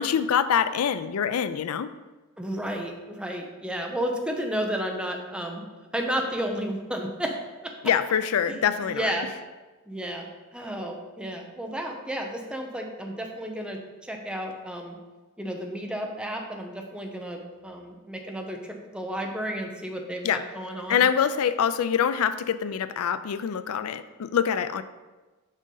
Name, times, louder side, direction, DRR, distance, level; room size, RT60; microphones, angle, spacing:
voice 1, 0.0-1.9 7.8-9.1 20.2-20.4 20.9-24.8, left 8 dB, 85° left, 13 dB, 0.4 m, -25 dB
voice 2, 2.4-5.6 5.9-7.3 7.6-7.7 8.5-8.6 8.8-9.3 9.9-10.3 10.5-15.0 15.4-21.0, equal, 5° right, 2 dB, 0.7 m, -32 dB
6.4 x 5.2 x 3.9 m, 1.2 s
head